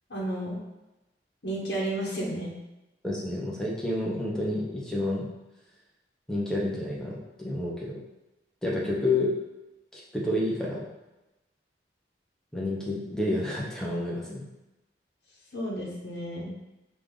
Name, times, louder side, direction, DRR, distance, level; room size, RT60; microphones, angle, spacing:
voice 1, 0.1-0.6 1.4-2.5 15.5-16.6, right 1 dB, 75° left, -5 dB, 1.2 m, -32 dB
voice 2, 3.0-5.3 6.3-8.0 8.6-9.3 9.9-10.9 12.5-14.4, left 1 dB, 5° left, -4 dB, 0.8 m, -29 dB
5.2 x 2.5 x 3.8 m, 0.99 s
head